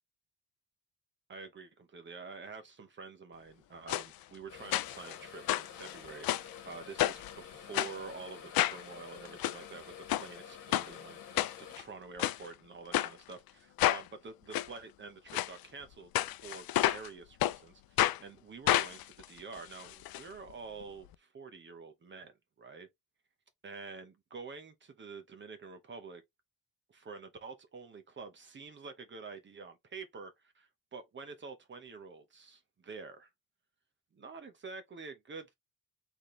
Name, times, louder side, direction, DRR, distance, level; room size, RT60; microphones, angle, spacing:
voice 1, 1.3-16.1 16.4-22.9 23.6-26.2 26.9-33.3 34.1-35.5, right 4 dB, 35° right, 0.9 m, -48 dB
sound 1, 3.9-4.1 4.7-5.2 5.5-6.5 7.0-7.3 7.7-7.9 8.5-8.8 9.2-9.6 10.1-10.3 10.7-10.9 11.4-11.8 12.2-12.4 12.9-13.1 13.8-14.0 14.5-14.7 15.3-15.5 16.1-17.1 17.4-17.6 18.0-18.2 18.7-20.2 20.5-20.6 20.8-20.9, left 14 dB, 85° left, 0.5 m, -30 dB
sound 2, 4.5-11.8, left 8 dB, 60° left, 1.4 m, -49 dB
4.3 x 3.4 x 3.1 m
wide cardioid pair, 175°, 35 cm